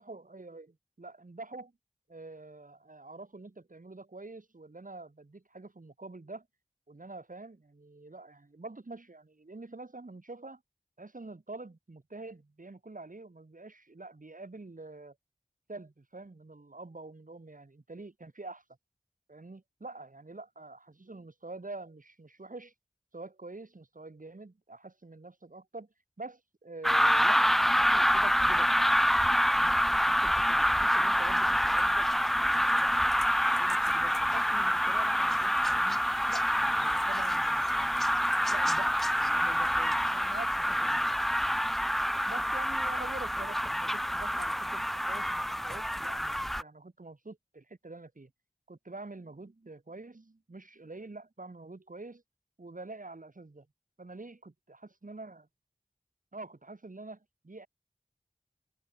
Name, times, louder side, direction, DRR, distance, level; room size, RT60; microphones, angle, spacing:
voice 1, 0.0-1.7 2.1-6.5 6.9-10.6 11.0-15.2 15.7-18.6 19.3-22.7 23.1-25.9 26.2-28.7 29.5-29.8 30.1-32.1 32.4-33.0 33.5-36.0 36.3-38.2 38.5-41.0 42.3-48.3 48.7-52.2 52.6-53.7 54.0-54.5 55.0-55.5 56.3-57.7, right 2 dB, 80° right, 4.4 m, -46 dB
sound 1, 26.8-46.6, equal, ahead, 0.3 m, -27 dB
wide cardioid pair, 40°, 14 cm